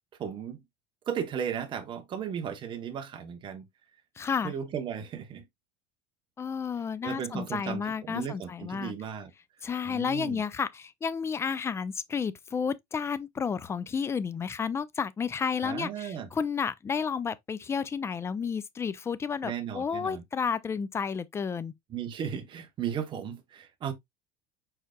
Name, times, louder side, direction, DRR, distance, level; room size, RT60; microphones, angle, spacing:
voice 1, 0.2-0.6 1.1-3.6 4.4-5.4 7.0-9.3 9.9-10.4 15.6-16.3 19.4-20.2 21.9-23.9, right 8 dB, 30° right, 0.9 m, -35 dB
voice 2, 4.2-4.5 6.4-8.9 9.6-21.7, left 6 dB, 15° left, 0.4 m, -31 dB
4.9 x 4.5 x 2.3 m
supercardioid pair, 135°, 16 cm